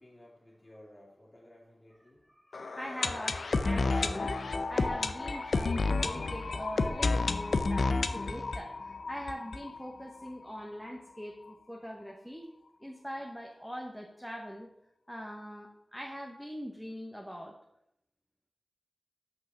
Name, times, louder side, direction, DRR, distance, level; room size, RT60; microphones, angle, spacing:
voice 1, 0.0-2.2, left 1 dB, 30° left, -4 dB, 2.2 m, -56 dB
voice 2, 2.3-12.5 12.8-14.7 15.1-17.6, equal, ahead, 0 dB, 1.0 m, -42 dB
sound 1, 2.5-10.3 10.6-10.7 10.8-10.9 11.5-11.6, left 3 dB, 75° left, 0.5 m, -31 dB
6.6 x 5.4 x 5.9 m, 0.77 s
wide cardioid pair, 70°, 0 cm